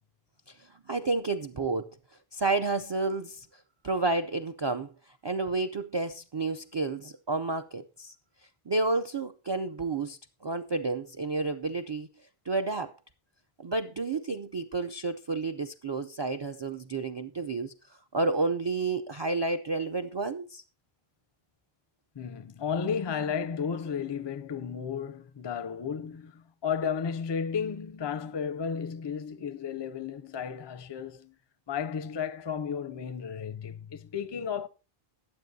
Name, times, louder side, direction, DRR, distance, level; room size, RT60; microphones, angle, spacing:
voice 1, 0.9-1.9 2.3-3.5 3.8-4.9 5.2-8.1 8.7-12.1 12.5-12.9 13.6-20.6, right 3 dB, 40° right, 0.4 m, -30 dB
voice 2, 22.2-31.4 31.7-34.7, left 7 dB, 35° left, 0.4 m, -33 dB
21.0 x 7.6 x 2.7 m
omnidirectional pair, 1.0 m